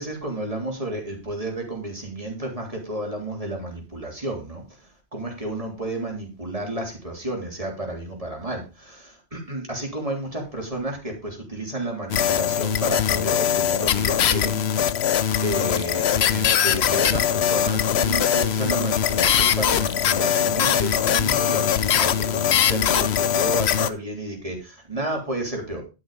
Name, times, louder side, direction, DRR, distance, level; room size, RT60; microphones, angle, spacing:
voice 1, 0.0-4.6 5.1-15.0 15.4-25.8, right 1 dB, 35° right, 0 dB, 3.6 m, -31 dB
sound 1, 12.1-23.9, left 9 dB, 75° left, 1.0 m, -21 dB
11.5 x 6.5 x 5.0 m, 0.30 s
omnidirectional pair, 1.1 m